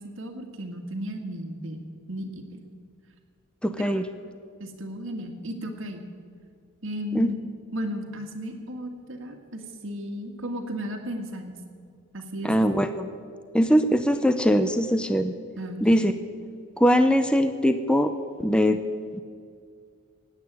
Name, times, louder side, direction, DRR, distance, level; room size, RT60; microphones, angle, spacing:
voice 1, 0.0-1.8 2.1-2.6 3.8-4.0 4.6-6.0 6.8-7.4 7.7-11.6 12.1-12.7 15.6-15.9, equal, 70° right, 4 dB, 2.0 m, -34 dB
voice 2, 3.6-4.0 7.1-7.3 12.4-13.1 13.5-15.3 15.8-16.1 16.8-18.1 18.4-18.8, equal, 5° left, 8 dB, 0.6 m, -21 dB
16.0 x 9.1 x 9.5 m, 2.2 s
head